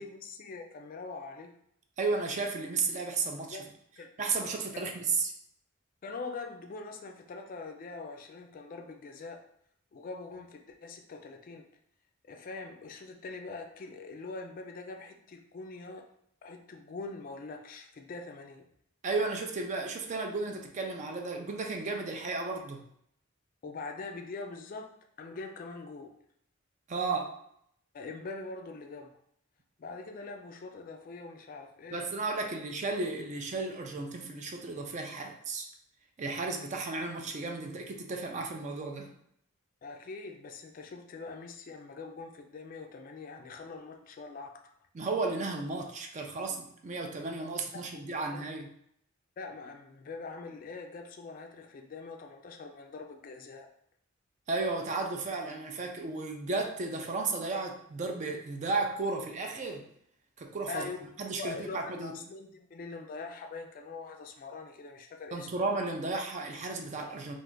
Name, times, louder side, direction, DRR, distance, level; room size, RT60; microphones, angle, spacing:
voice 1, 0.0-1.5 3.5-3.7 4.0-4.1 6.0-9.4 9.9-11.7 12.2-16.1 16.4-18.7 23.6-24.9 25.2-26.2 27.9-29.2 29.8-32.0 39.8-44.7 47.7-48.4 49.4-53.7 60.7-61.0 61.4-65.5, left 3 dB, 40° left, 4 dB, 0.3 m, -43 dB
voice 2, 2.0-3.6 4.2-5.3 19.0-22.8 26.9-27.4 31.9-35.7 36.2-39.1 44.9-48.7 54.5-59.8 60.4-60.9 61.2-62.1 65.3-67.3, right 3 dB, 35° right, 4 dB, 0.4 m, -34 dB
2.5 x 2.4 x 3.7 m, 0.71 s
head